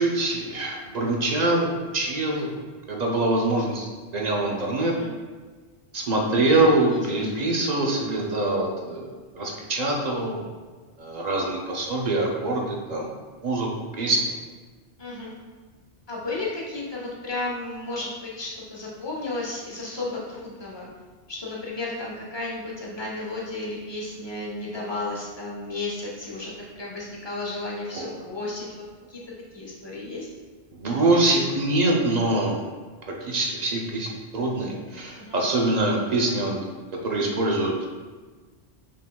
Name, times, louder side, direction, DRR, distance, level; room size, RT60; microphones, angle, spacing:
voice 1, 0.0-4.9 5.9-10.4 11.0-13.1 13.4-13.7 14.0-14.3 27.9-28.1 30.7-32.6 33.1-36.6 37.0-37.9, right 2 dB, 50° right, -1 dB, 0.5 m, -24 dB
voice 2, 6.9-7.4 15.0-15.3 16.1-20.9 21.3-28.7 29.1-29.2 29.5-30.3 35.2-35.4, left 2 dB, 25° left, -5 dB, 0.8 m, -33 dB
5.2 x 3.5 x 2.2 m, 1.4 s
omnidirectional pair, 1.2 m